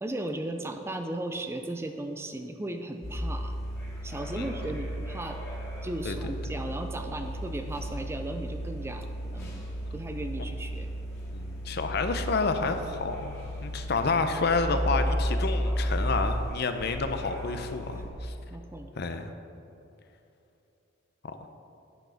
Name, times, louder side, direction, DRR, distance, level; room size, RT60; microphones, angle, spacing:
voice 1, 0.0-3.5 4.0-5.4 5.8-9.4 9.9-10.9 17.9-18.0 18.5-18.9, right 1 dB, 10° right, 6 dB, 0.4 m, -36 dB
sound 1, 3.0-18.1, equal, 10° left, 2.0 m, -34 dB
voice 2, 6.0-6.4 9.4-9.6 11.3-13.4 13.6-18.3 19.0-19.3, left 3 dB, 50° left, 7 dB, 0.6 m, -29 dB
9.2 x 6.3 x 5.1 m, 2.9 s
head